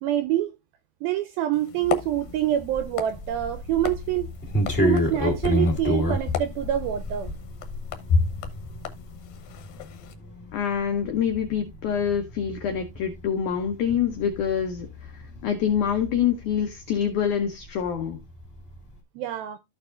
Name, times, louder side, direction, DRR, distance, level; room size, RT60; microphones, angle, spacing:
voice 1, 0.0-0.5 1.0-4.3 4.8-7.3 19.2-19.6, right 12 dB, 85° right, 2.1 m, -26 dB
sound 1, 1.5-10.1, left 5 dB, 70° left, 2.4 m, -32 dB
sound 2, 1.8-17.4 17.6-18.9, left 1 dB, 20° left, 1.6 m, -30 dB
voice 2, 10.5-14.9 15.1-18.2, left 8 dB, 85° left, 1.7 m, -26 dB
14.5 x 4.9 x 2.4 m
omnidirectional pair, 4.9 m